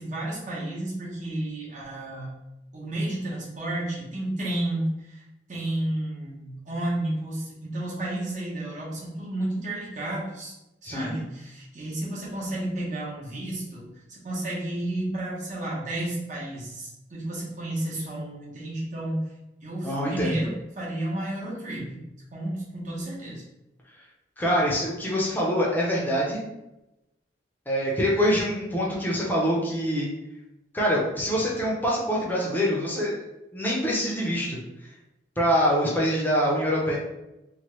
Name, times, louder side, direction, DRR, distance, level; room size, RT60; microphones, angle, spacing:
voice 1, 0.0-2.3 2.7-5.2 5.5-10.5 10.8-19.3 19.6-22.0 22.3-23.4, right 1 dB, 45° right, -5 dB, 0.9 m, -32 dB
voice 2, 19.8-20.4 24.4-26.4 27.7-30.1 30.7-33.2 33.5-34.6 35.4-36.9, equal, 10° left, -5 dB, 0.6 m, -25 dB
3.0 x 2.2 x 3.0 m, 0.92 s
head